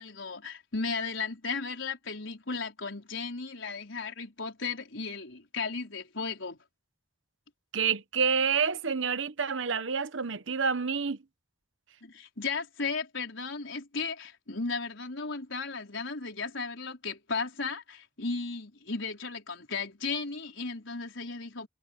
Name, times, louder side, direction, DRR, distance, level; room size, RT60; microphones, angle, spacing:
voice 1, 0.0-6.6 12.0-21.7, left 4 dB, 85° left, 4.6 m, -35 dB
voice 2, 7.7-11.2, right 6 dB, 85° right, 1.1 m, -28 dB
head